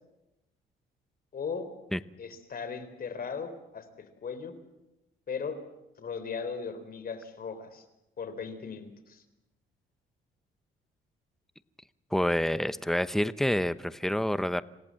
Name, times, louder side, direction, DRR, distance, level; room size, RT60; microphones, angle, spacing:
voice 1, 1.3-1.7 2.2-4.5 5.3-5.6 6.0-7.8 8.2-9.2, left 5 dB, 50° left, 11 dB, 4.0 m, -37 dB
voice 2, 12.1-14.6, left 1 dB, ahead, 13 dB, 0.9 m, -27 dB
27.0 x 18.0 x 7.7 m, 0.94 s
cardioid pair, 90°, 20 cm